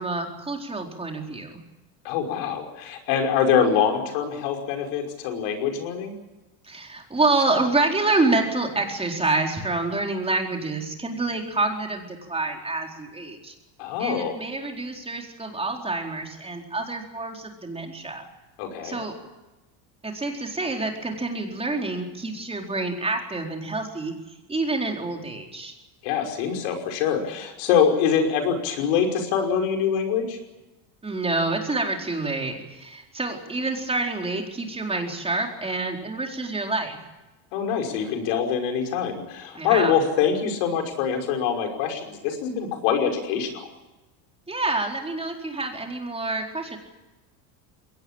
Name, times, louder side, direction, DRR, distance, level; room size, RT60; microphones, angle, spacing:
voice 1, 0.0-1.5 6.6-13.5 14.0-18.3 18.8-19.1 20.0-24.1 24.5-25.7 31.0-37.0 39.5-40.0 44.5-46.8, right 3 dB, 10° right, 2 dB, 4.3 m, -27 dB
voice 2, 2.0-6.1 13.8-14.3 18.6-19.0 26.0-30.4 37.5-43.6, left 7 dB, 75° left, 3 dB, 5.7 m, -24 dB
22.5 x 18.5 x 8.8 m, 1.1 s
supercardioid pair, 130°, 50 cm